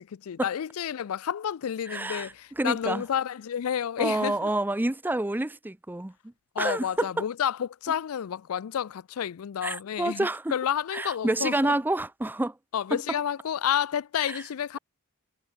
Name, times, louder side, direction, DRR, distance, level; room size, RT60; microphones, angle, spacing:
voice 1, 0.0-4.5 6.5-11.7 12.7-14.8, left 9 dB, 90° left, 0.4 m, -30 dB
voice 2, 1.9-2.3 2.6-3.0 4.0-6.1 6.6-7.2 9.6-10.4 10.9-12.6 12.9-13.0 14.3-14.4, right 1 dB, 10° right, 0.5 m, -28 dB
head